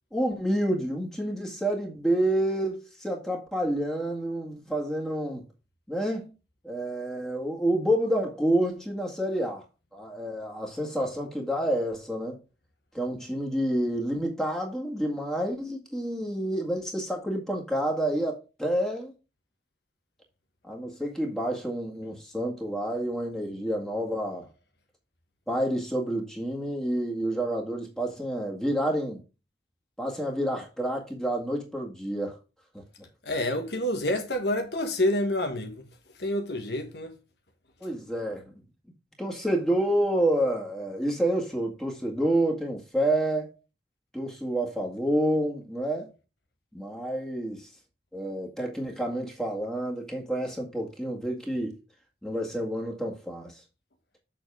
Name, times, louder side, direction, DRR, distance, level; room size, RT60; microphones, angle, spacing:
voice 1, 0.1-5.4 5.9-6.3 6.6-9.6 9.9-12.4 12.9-19.1 20.7-24.5 25.5-29.2 30.0-32.4 32.7-32.8 37.8-38.5 39.2-43.6 44.1-46.1 46.7-47.7 48.1-51.7 52.2-53.6, right 1 dB, 5° left, 1.9 m, -29 dB
voice 2, 33.2-35.8 36.2-37.1, left 1 dB, 70° left, 1.4 m, -28 dB
7.4 x 6.6 x 3.4 m
head